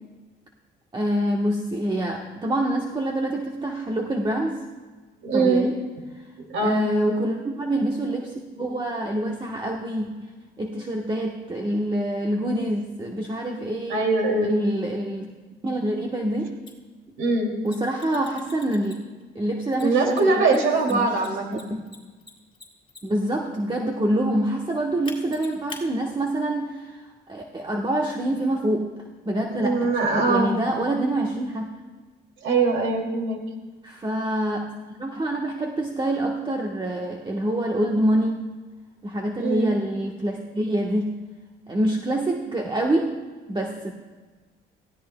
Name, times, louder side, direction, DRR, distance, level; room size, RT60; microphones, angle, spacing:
voice 1, 0.9-4.6 5.3-5.7 6.1-6.3 6.6-10.3 10.6-14.0 14.4-15.3 15.6-16.5 17.6-18.9 19.3-21.2 23.0-28.9 29.2-31.7 33.8-34.7 35.0-38.5 39.0-41.2 41.7-43.2 43.5-43.9, right 1 dB, 25° right, 0 dB, 1.3 m, -26 dB
voice 2, 5.2-5.7 6.5-6.9 13.9-14.5 17.2-17.5 19.8-21.7 29.5-30.5 32.4-33.4 39.4-39.8, right 3 dB, 80° right, 2 dB, 2.7 m, -22 dB
Mechanisms, 16.7-16.8 17.6-19.2 19.7-23.3 25.0-25.8, left 4 dB, 25° left, 4.1 m, -43 dB
22.5 x 16.0 x 2.3 m, 1.3 s
cardioid pair, 90°, 20 cm